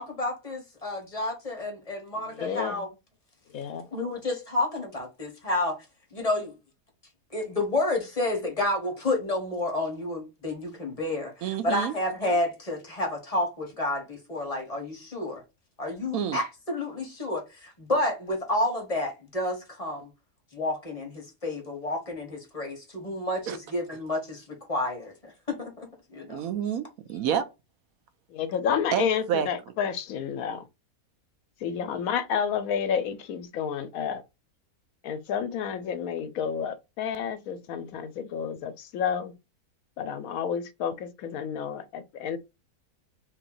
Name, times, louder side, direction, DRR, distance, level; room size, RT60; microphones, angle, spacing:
voice 1, 0.0-2.9 3.9-5.7 6.1-6.5 7.3-11.3 11.6-15.4 15.8-20.1 20.5-26.4, left 2 dB, 25° left, 1.1 m, -30 dB
voice 2, 2.3-2.8 3.5-3.8 28.3-30.6 31.6-34.2 35.0-39.3 40.0-42.4, left 7 dB, 75° left, 1.0 m, -30 dB
voice 3, 11.4-11.9 16.1-16.4 23.5-23.6 26.3-27.4 28.9-29.5, right 8 dB, 75° right, 1.0 m, -28 dB
3.0 x 2.9 x 3.8 m
omnidirectional pair, 1.5 m